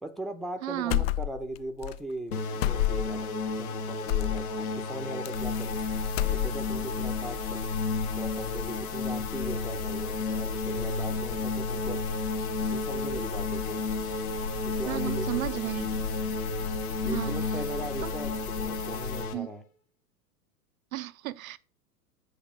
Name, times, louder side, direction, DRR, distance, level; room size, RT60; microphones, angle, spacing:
voice 1, 0.0-5.8 6.3-12.0 12.7-13.8 14.7-15.9 17.0-19.6, right 1 dB, ahead, 0.7 m, -39 dB
voice 2, 0.6-1.0 14.9-15.9 17.0-17.4 18.0-18.1 19.3-19.5 20.9-21.6, right 15 dB, 60° right, 0.6 m, -33 dB
sound 1, 0.9-1.6 1.8-2.0 2.6-3.2 4.1-4.4 5.2-5.8 6.1-6.8, left 13 dB, 40° left, 0.4 m, -28 dB
sound 2, 2.3-19.3, left 3 dB, 65° left, 1.7 m, -33 dB
sound 3, 5.3-19.3, left 6 dB, 80° left, 1.7 m, -37 dB
8.5 x 5.5 x 5.2 m
figure-of-eight pair, 95°, 47 cm